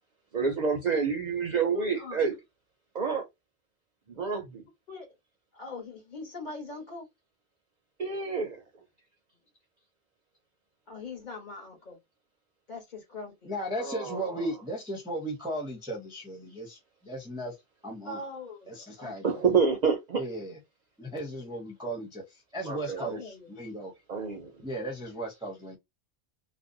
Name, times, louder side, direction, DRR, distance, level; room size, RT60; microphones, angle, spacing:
voice 1, 0.3-2.3 2.9-3.3 4.1-4.6 8.0-8.5 13.8-14.5 19.2-20.2 22.7-23.2 24.1-24.5, right 5 dB, 55° right, 0.5 m, -28 dB
voice 2, 1.7-2.2 4.9-5.1 5.5-7.1 10.9-12.0 12.7-13.5 18.0-19.4 23.0-23.5, left 3 dB, 45° left, 1.0 m, -41 dB
voice 3, 13.4-17.6 17.8-18.2 18.7-19.4 20.2-20.6 21.0-23.2 23.5-23.9 24.6-25.8, right 1 dB, 5° right, 0.4 m, -36 dB
2.4 x 2.0 x 2.5 m
omnidirectional pair, 1.1 m